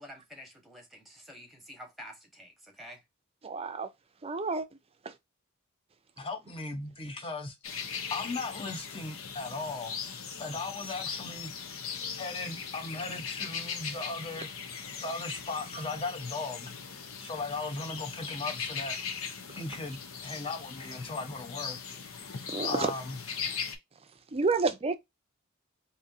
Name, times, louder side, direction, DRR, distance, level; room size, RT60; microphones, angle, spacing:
voice 1, 0.0-3.0, equal, ahead, 1.2 m, -49 dB
voice 2, 3.4-3.9 4.2-4.7 5.0-5.1 22.5-22.9 24.3-25.0, right 4 dB, 30° right, 0.5 m, -29 dB
voice 3, 6.2-7.6 8.1-11.5 11.9-14.5 15.0-16.7 17.2-19.0 19.5-23.2, left 3 dB, 25° left, 0.8 m, -38 dB
sound 1, 7.6-23.8, left 6 dB, 75° left, 0.7 m, -39 dB
4.0 x 2.7 x 2.6 m
head